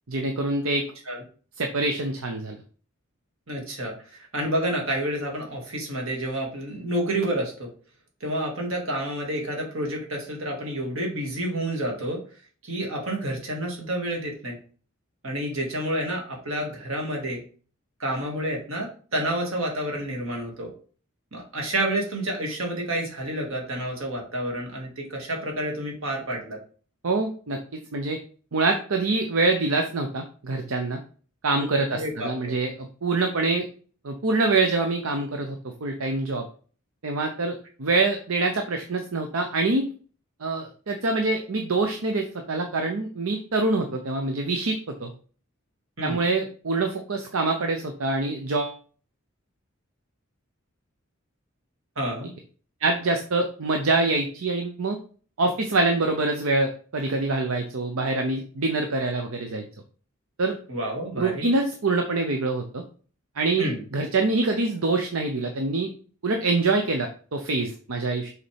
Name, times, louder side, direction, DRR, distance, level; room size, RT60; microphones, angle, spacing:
voice 1, 0.1-0.8 1.6-2.6 27.0-27.6 27.9-28.2 28.5-31.0 31.4-33.7 34.0-36.5 37.0-39.9 40.4-45.1 46.0-48.8 52.8-55.0 55.4-59.6 60.4-60.6 61.2-62.8 63.4-65.9 66.2-68.3, right 3 dB, 90° right, 4 dB, 0.8 m, -25 dB
voice 2, 3.5-7.7 8.2-12.2 12.6-14.6 15.2-17.4 18.0-20.7 21.3-26.6 31.9-32.5 46.0-46.2 52.0-52.3 60.7-61.5 63.6-63.8, right 1 dB, 75° right, 0 dB, 2.1 m, -29 dB
6.5 x 4.3 x 3.4 m, 0.41 s
head